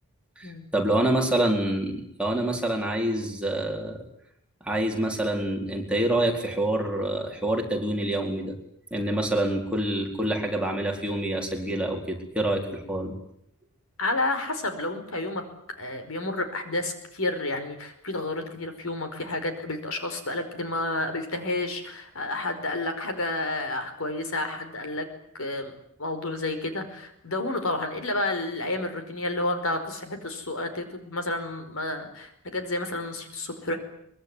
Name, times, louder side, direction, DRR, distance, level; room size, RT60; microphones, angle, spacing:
voice 1, 0.4-4.1 4.6-8.6 8.9-13.2, right 1 dB, 5° right, 0 dB, 4.5 m, -26 dB
voice 2, 14.0-15.4 15.8-25.1 25.3-25.7 26.0-33.8, left 2 dB, 65° left, 7 dB, 4.9 m, -30 dB
23.5 x 22.5 x 9.8 m, 0.72 s
head